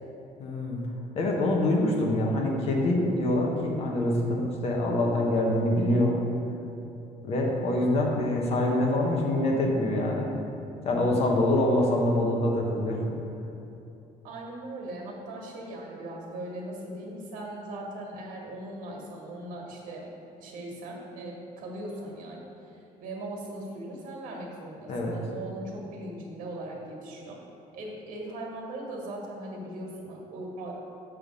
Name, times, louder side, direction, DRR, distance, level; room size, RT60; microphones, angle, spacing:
voice 1, 0.4-0.8 1.1-6.2 7.2-10.3 10.8-13.0 24.9-25.2, left 1 dB, 45° left, 0 dB, 1.0 m, -25 dB
voice 2, 14.2-22.4 23.0-27.4 27.7-30.9, right 1 dB, 80° right, -1 dB, 1.6 m, -39 dB
6.7 x 3.6 x 6.1 m, 2.9 s
cardioid pair, 170°, 14 cm